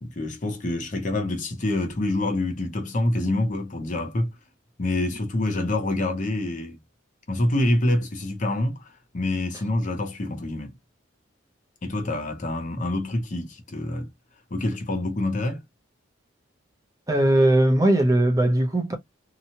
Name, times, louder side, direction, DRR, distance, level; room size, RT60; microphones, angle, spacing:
voice 1, 0.0-4.3 4.8-6.8 7.3-10.7 11.8-14.1 14.5-15.6, left 1 dB, 40° left, 0.7 m, -26 dB
voice 2, 17.1-18.9, right 1 dB, 15° right, 0.7 m, -19 dB
2.9 x 2.2 x 2.8 m
head